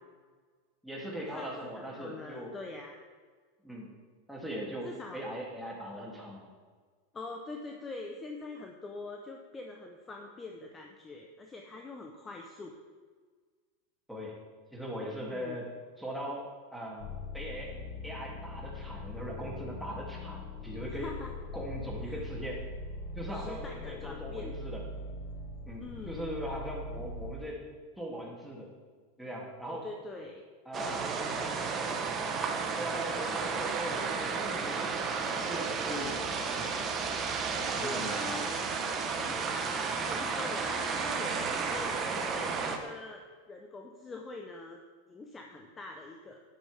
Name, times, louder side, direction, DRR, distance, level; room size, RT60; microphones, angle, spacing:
voice 1, 0.8-2.5 3.6-3.9 4.3-6.5 14.1-14.3 14.7-15.7 16.0-17.7 18.0-21.1 21.5-22.7 23.1-24.8 25.6-27.6 28.0-28.7 29.2-29.9 30.6-31.1 32.7-36.8 37.7-38.4, equal, ahead, -4 dB, 3.3 m, -40 dB
voice 2, 1.3-3.0 4.8-5.4 7.1-12.7 15.2-15.6 20.9-21.3 22.0-22.2 23.3-24.6 25.8-26.3 29.7-30.4 37.5-38.5 39.2-44.8 45.1-46.4, left 3 dB, 20° left, 2 dB, 1.1 m, -44 dB
sound 1, 17.0-27.3, left 2 dB, 65° left, 1.3 m, -41 dB
sound 2, 30.7-42.8, right 5 dB, 30° right, 1.4 m, -32 dB
11.0 x 10.5 x 3.8 m, 1.5 s
hypercardioid pair, 105°, 0 cm